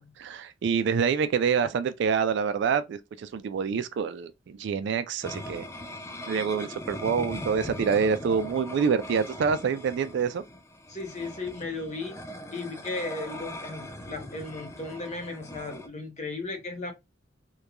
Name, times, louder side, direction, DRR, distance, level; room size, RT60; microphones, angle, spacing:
voice 1, 0.0-5.6 6.3-10.4, right 6 dB, 65° right, 0.3 m, -26 dB
sound 1, 5.2-15.9, left 1 dB, 15° left, 0.3 m, -40 dB
voice 2, 10.9-12.2 12.5-16.9, left 3 dB, 40° left, 0.7 m, -36 dB
2.9 x 2.2 x 2.3 m
head